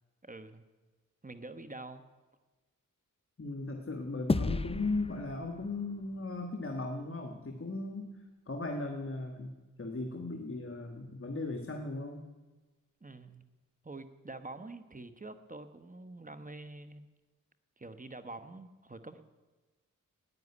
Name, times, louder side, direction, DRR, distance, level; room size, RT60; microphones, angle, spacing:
voice 1, 0.2-0.6 1.2-2.1 13.0-13.5 13.8-17.0 17.8-19.2, right 2 dB, 25° right, 10 dB, 1.1 m, -46 dB
voice 2, 3.4-8.1 8.5-9.5 9.8-12.2, left 2 dB, 40° left, 4 dB, 1.6 m, -37 dB
sound 1, 4.3-6.9, left 3 dB, 15° left, 0.5 m, -35 dB
10.5 x 9.4 x 9.8 m, 1.2 s
cardioid pair, 50°, 34 cm